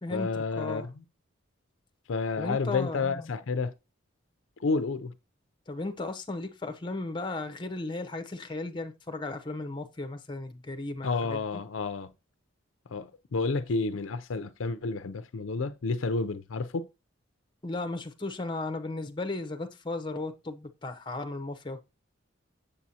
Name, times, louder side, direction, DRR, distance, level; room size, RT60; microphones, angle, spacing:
voice 1, 0.1-1.0 2.1-3.7 4.6-5.1 11.0-12.1 12.9-16.9, left 4 dB, 70° left, 0.5 m, -30 dB
voice 2, 2.4-3.3 5.7-11.6 17.6-21.8, left 2 dB, 25° left, 0.7 m, -35 dB
7.3 x 6.9 x 2.8 m
head